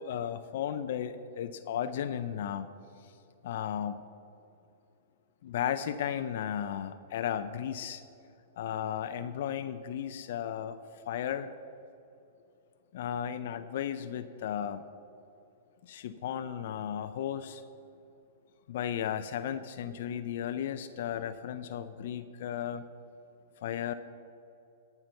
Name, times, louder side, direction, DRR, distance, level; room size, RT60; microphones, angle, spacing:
voice 1, 0.0-2.7 3.4-4.0 5.4-8.0 8.6-10.8 11.1-11.5 12.9-14.8 15.8-17.6 18.7-22.8 23.6-23.9, left 9 dB, 65° left, 11 dB, 0.5 m, -35 dB
13.5 x 5.9 x 6.9 m, 2.7 s
hypercardioid pair, 120°, 0 cm